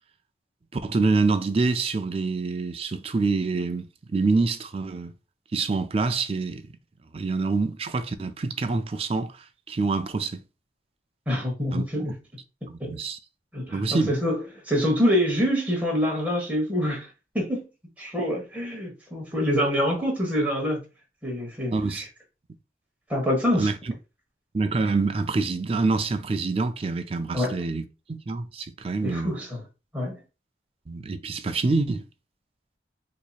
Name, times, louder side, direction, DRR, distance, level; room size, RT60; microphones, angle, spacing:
voice 1, 0.7-5.1 5.5-6.6 7.1-10.4 11.7-12.1 12.7-13.2 13.7-14.2 21.7-22.1 23.5-23.8 24.5-29.4 30.9-32.0, right 3 dB, 30° right, 0.3 m, -26 dB
voice 2, 11.3-12.2 12.8-13.0 13.5-17.1 17.3-17.6 18.0-20.8 21.2-22.0 23.1-23.7 27.3-27.6 29.0-29.6 29.9-30.2, equal, 10° right, 1.2 m, -26 dB
4.6 x 2.8 x 2.3 m
head